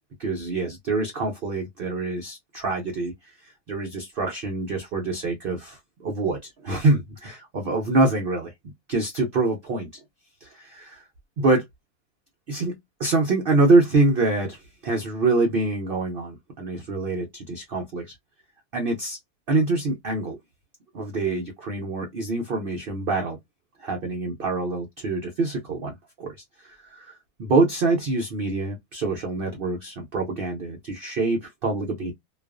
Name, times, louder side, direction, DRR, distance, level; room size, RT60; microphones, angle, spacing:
voice 1, 0.2-3.1 3.4-8.5 8.9-9.9 10.4-11.0 11.4-11.6 12.5-18.1 18.7-19.2 19.5-20.4 20.9-23.4 23.8-32.1, right 3 dB, 80° right, 0.5 m, -25 dB
2.4 x 2.3 x 2.3 m
omnidirectional pair, 1.7 m